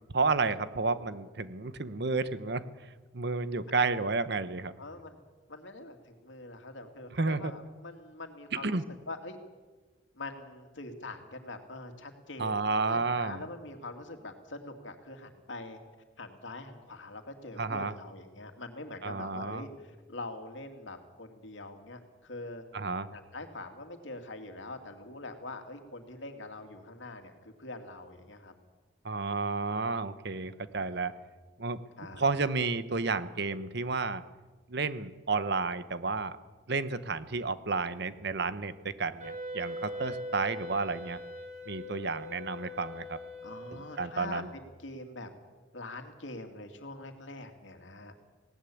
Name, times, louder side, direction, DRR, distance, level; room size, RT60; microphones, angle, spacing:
voice 1, 0.0-2.6 3.1-4.7 7.1-7.5 8.5-8.9 12.4-13.4 17.6-17.9 19.0-19.7 22.7-23.1 29.0-31.1 31.6-31.8 32.2-34.2 34.7-36.4 36.7-41.2 41.7-43.2 43.7-44.5, right 4 dB, 60° right, 13 dB, 1.1 m, -31 dB
voice 2, 4.8-5.2 5.5-8.8 9.1-9.4 10.1-15.8 16.2-22.6 23.1-28.5 30.4-31.0 32.0-32.2 43.4-45.3 45.7-48.1, left 2 dB, 80° left, 5 dB, 2.6 m, -44 dB
Wind instrument woodwind instrument, 39.2-44.4, equal, 40° right, 3.6 m, -42 dB
19.0 x 18.0 x 8.6 m, 1.3 s
head